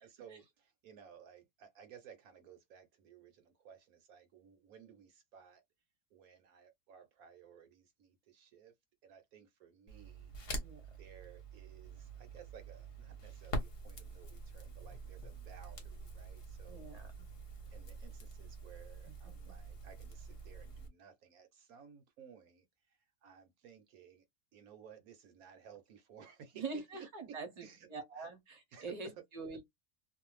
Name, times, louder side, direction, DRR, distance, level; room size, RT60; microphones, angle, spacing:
voice 1, 0.0-5.6 6.1-8.7 9.0-10.3 11.0-16.9 17.7-24.2 24.5-27.9 28.2-28.3 28.7-29.1, right 7 dB, 70° right, 1.0 m, -57 dB
Crackle, 9.9-20.9, right 1 dB, 45° left, 0.9 m, -46 dB
voice 2, 16.7-17.3 19.1-19.6 26.5-29.6, right 4 dB, 35° right, 0.7 m, -45 dB
2.6 x 2.3 x 3.0 m
omnidirectional pair, 1.7 m